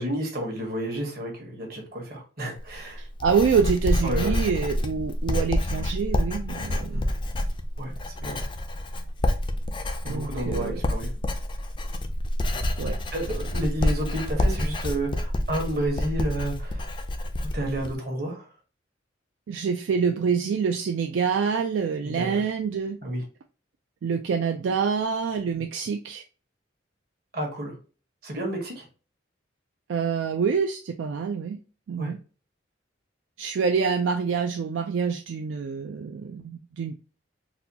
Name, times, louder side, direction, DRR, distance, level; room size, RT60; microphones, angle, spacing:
voice 1, 0.0-3.0 4.0-4.4 6.9-7.1 7.8-7.9 8.2-8.4 10.0-11.1 13.1-16.9 17.5-18.5 22.0-22.4 23.0-23.2 27.3-27.8 28.2-28.8 32.0-32.1, right 1 dB, 50° right, 1 dB, 1.2 m, -31 dB
Writing, 2.6-17.9, left 1 dB, 25° left, 0.3 m, -28 dB
voice 2, 3.0-7.0 10.1-10.8 12.8-13.0 19.5-23.0 24.0-26.2 29.9-31.6 31.9-32.2 33.4-36.9, right 6 dB, 80° right, 5 dB, 0.3 m, -26 dB
4.1 x 2.3 x 2.7 m, 0.37 s
head